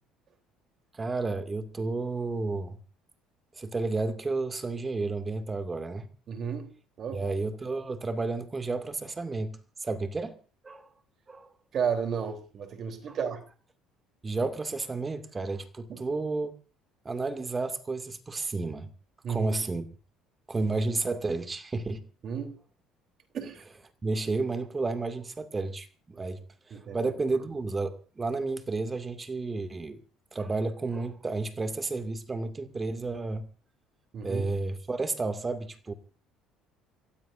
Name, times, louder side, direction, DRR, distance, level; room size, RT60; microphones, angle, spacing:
voice 1, 0.9-2.8 3.5-6.1 7.1-10.4 10.6-10.9 11.3-11.5 13.1-13.2 14.2-16.5 17.0-18.9 19.3-19.8 20.5-22.1 24.0-26.4 26.7-30.0 30.3-33.5 34.2-35.9, right 3 dB, 25° right, 2.3 m, -31 dB
voice 2, 6.3-6.7 7.0-7.3 11.7-13.4 15.9-16.1 19.2-19.5 22.2-22.5 23.3-23.6 26.7-27.0 34.1-34.4, right 7 dB, 50° right, 3.6 m, -32 dB
28.5 x 15.5 x 2.7 m
hypercardioid pair, 65°, 0 cm